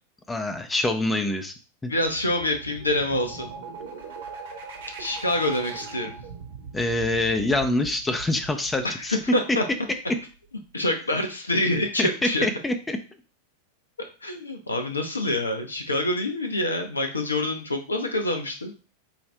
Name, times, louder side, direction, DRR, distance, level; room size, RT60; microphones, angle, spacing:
voice 1, 0.3-1.5 1.8-1.9 6.7-9.2 12.0-12.1 12.4-13.0, left 2 dB, 10° left, 7 dB, 0.6 m, -25 dB
voice 2, 1.9-3.5 5.0-6.1 8.8-9.6 10.7-12.5 14.2-18.7, left 1 dB, 80° left, 5 dB, 0.6 m, -26 dB
sound 1, 1.9-9.5, right 5 dB, 60° right, 1.0 m, -40 dB
4.7 x 2.6 x 3.3 m, 0.35 s
figure-of-eight pair, 90°, 0 cm